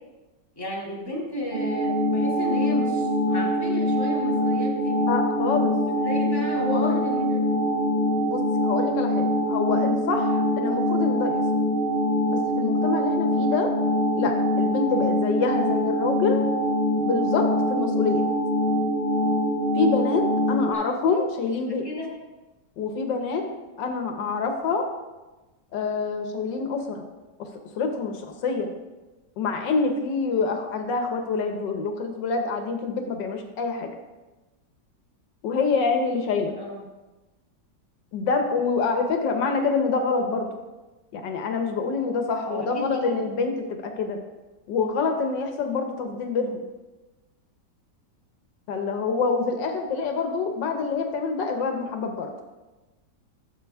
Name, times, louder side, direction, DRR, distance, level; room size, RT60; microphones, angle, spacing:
voice 1, 0.6-5.0 6.0-7.6 20.7-20.8 21.8-22.1 36.6-36.8 42.5-43.2, left 1 dB, 10° left, -5 dB, 2.4 m, -32 dB
sound 1, 1.5-20.7, equal, 25° right, 2.3 m, -24 dB
voice 2, 5.1-5.7 6.7-6.9 8.3-11.4 12.3-13.7 14.2-16.4 17.0-18.2 19.7-21.8 22.8-23.4 23.8-24.8 25.7-27.0 27.4-27.5 27.7-28.7 29.4-33.9 35.4-36.5 38.1-40.5 41.1-44.2 44.7-46.6 48.7-52.3, left 4 dB, 85° left, 4 dB, 1.7 m, -26 dB
13.5 x 7.1 x 3.5 m, 1.1 s
omnidirectional pair, 1.9 m